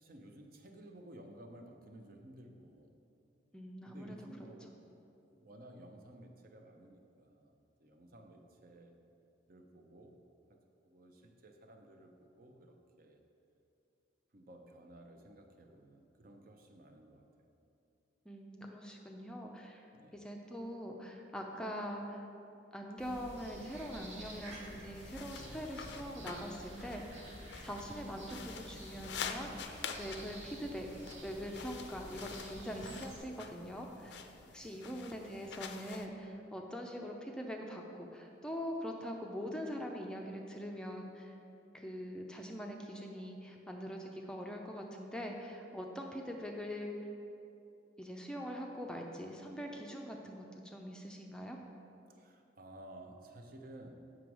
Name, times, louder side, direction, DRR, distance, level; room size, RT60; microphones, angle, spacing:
voice 1, 0.0-2.9 3.9-5.1 5.3-9.0 9.5-10.2 10.5-13.2 14.3-17.5 19.9-20.3 52.1-53.9, right 1 dB, 50° right, 4 dB, 0.6 m, -55 dB
voice 2, 3.5-4.2 18.3-19.9 20.1-22.3 22.7-27.0 27.6-30.9 31.2-34.3 34.5-41.4 41.7-46.9 48.0-51.6, equal, 5° left, 1 dB, 0.4 m, -43 dB
sound 1, 23.0-33.2, right 1 dB, 90° right, 1.7 m, -50 dB
sound 2, 24.9-36.1, left 6 dB, 65° left, 0.5 m, -47 dB
7.6 x 6.0 x 4.7 m, 2.7 s
head